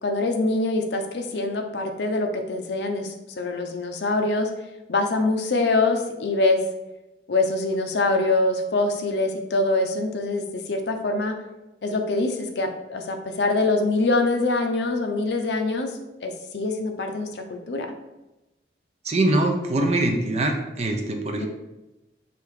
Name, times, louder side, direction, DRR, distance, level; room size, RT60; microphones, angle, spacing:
voice 1, 0.0-4.5 4.9-6.6 7.3-11.4 11.8-15.9 16.2-17.9 21.4-21.5, left 2 dB, 70° left, 5 dB, 0.5 m, -24 dB
voice 2, 19.0-21.5, right 2 dB, 35° right, 3 dB, 0.5 m, -23 dB
3.4 x 2.7 x 4.7 m, 1.0 s
head